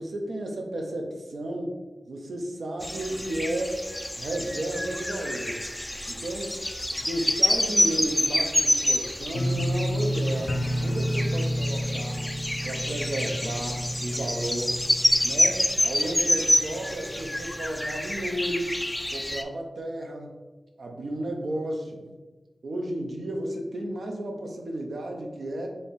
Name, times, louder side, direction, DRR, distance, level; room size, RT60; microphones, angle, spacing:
voice 1, 0.0-1.8 2.1-3.8 4.2-5.6 6.1-6.6 7.0-10.5 10.8-12.3 12.6-14.8 15.2-18.7 19.1-20.4 20.8-22.2 22.6-25.7, right 1 dB, 75° right, 2 dB, 0.7 m, -33 dB
sound 1, 2.8-19.4, left 1 dB, 10° left, 0.3 m, -27 dB
sound 2, 9.3-16.2 16.5-17.0 17.4-17.5, equal, 80° left, 0.5 m, -30 dB
4.3 x 2.6 x 3.6 m, 1.2 s
cardioid pair, 60°, 0 cm